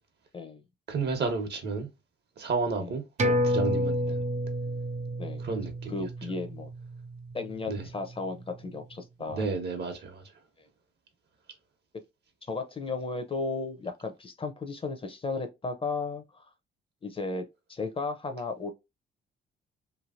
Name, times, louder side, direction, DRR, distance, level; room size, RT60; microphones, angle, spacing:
voice 1, 0.9-1.9 2.4-4.2 5.4-6.0 7.7-7.9 9.3-10.3, right 4 dB, 55° right, 1.2 m, -32 dB
sound 1, 3.2-8.1 8.5-8.6, equal, 35° right, 0.7 m, -30 dB
voice 2, 5.9-6.7 7.3-9.5 12.5-16.5 17.0-18.7, left 3 dB, 25° left, 0.7 m, -34 dB
3.2 x 2.6 x 2.5 m
cardioid pair, 90°, 20 cm